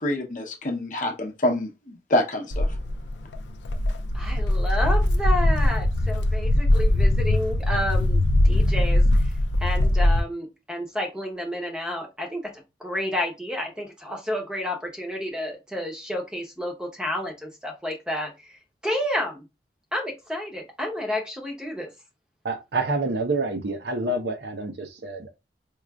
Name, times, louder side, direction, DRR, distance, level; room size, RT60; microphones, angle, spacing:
voice 1, 0.0-2.7, left 1 dB, 45° left, 0.7 m, -26 dB
Walk footsteps, 2.5-10.2, left 1 dB, 90° left, 0.4 m, -21 dB
voice 2, 4.1-9.3 9.6-19.5 19.9-21.9, left 1 dB, 5° right, 0.7 m, -30 dB
voice 3, 22.4-25.3, right 2 dB, 70° right, 0.7 m, -28 dB
4.7 x 2.5 x 2.3 m
head